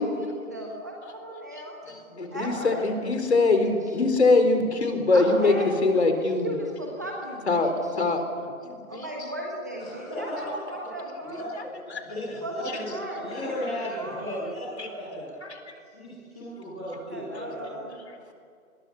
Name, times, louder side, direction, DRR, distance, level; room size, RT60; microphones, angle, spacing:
voice 1, 0.0-1.7 2.3-2.9 3.5-3.7 5.1-7.7 8.9-10.3 10.7-11.5 12.4-13.4 13.9-14.2 17.1-18.0, right 1 dB, 15° right, -1 dB, 1.3 m, -36 dB
voice 2, 1.9-6.6 7.4-7.7 8.0-8.3 8.6-9.3 10.4-10.5 11.6-12.0 12.3-13.0 14.8-14.9 15.4-15.7 17.3-17.5, left 3 dB, 50° left, 7 dB, 4.0 m, -24 dB
voice 3, 9.8-10.9 11.2-11.7 12.0-12.9 13.2-15.3 15.9-17.8, equal, 5° left, -14 dB, 1.1 m, -35 dB
28.0 x 21.5 x 8.4 m, 2.2 s
hypercardioid pair, 180°, 42 cm